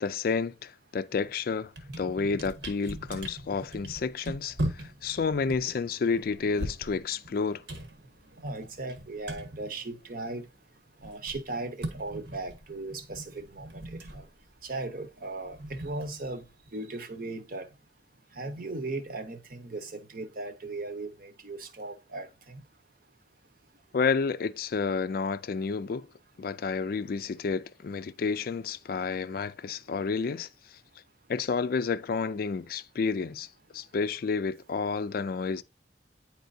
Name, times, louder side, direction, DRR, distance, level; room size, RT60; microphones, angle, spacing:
voice 1, 0.0-7.6 23.9-26.1 26.4-30.8 31.3-33.5 33.7-35.6, left 5 dB, 55° left, 0.3 m, -30 dB
sound 1, 1.1-1.3 1.6-10.5 10.8-16.7, right 1 dB, 80° right, 1.4 m, -40 dB
voice 2, 8.4-10.4 11.0-14.2 14.6-15.6 15.8-16.4 16.7-17.7 18.4-22.6, right 2 dB, 50° right, 0.9 m, -37 dB
9.3 x 4.3 x 2.6 m
head